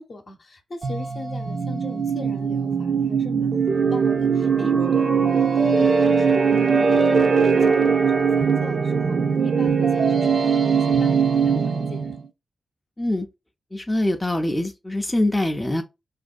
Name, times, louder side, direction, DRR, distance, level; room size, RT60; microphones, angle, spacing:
voice 1, 0.0-5.3 5.6-12.2, left 2 dB, 55° left, 0.7 m, -38 dB
sound 1, 0.8-12.2, right 6 dB, 60° right, 0.4 m, -20 dB
voice 2, 13.7-15.8, left 1 dB, 20° left, 0.4 m, -23 dB
2.5 x 2.2 x 2.4 m
supercardioid pair, 40°, 0 cm